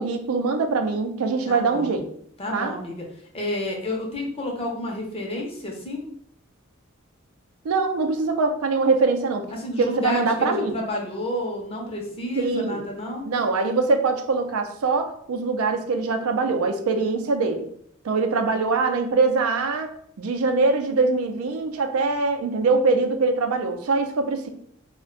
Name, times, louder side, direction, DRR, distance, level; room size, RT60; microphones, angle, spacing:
voice 1, 0.0-2.1 2.5-2.8 7.6-9.5 9.8-10.8 12.4-12.8 13.2-17.7 18.0-24.5, right 3 dB, 85° right, 7 dB, 0.4 m, -23 dB
voice 2, 1.5-2.0 2.4-3.0 3.3-6.1 9.5-13.3, left 1 dB, 30° left, 0 dB, 0.6 m, -30 dB
2.4 x 2.1 x 3.7 m, 0.67 s
head